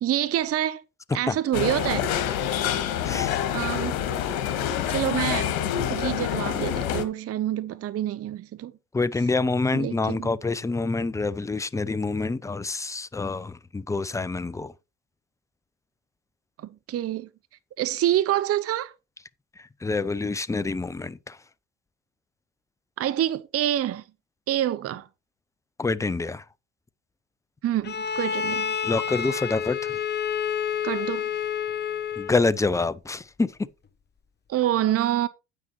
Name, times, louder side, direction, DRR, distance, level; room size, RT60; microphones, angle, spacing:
voice 1, 0.0-0.8 1.1-2.1 3.5-4.0 4.9-5.5 5.9-8.7 9.7-10.3 16.6-17.3 17.8-18.9 23.0-24.0 24.5-25.1 27.6-28.7 30.8-31.3 34.5-35.3, right 12 dB, 35° right, 0.8 m, -26 dB
sound 1, 1.5-7.0, left 10 dB, 65° left, 1.8 m, -27 dB
voice 2, 3.0-3.4 8.9-14.7 19.6-21.4 25.8-26.4 28.8-30.0 32.2-33.5, left 3 dB, 5° left, 0.5 m, -27 dB
Bowed string instrument, 27.8-32.4, left 7 dB, 25° left, 1.0 m, -29 dB
9.4 x 8.9 x 3.1 m
figure-of-eight pair, 60°, 43 cm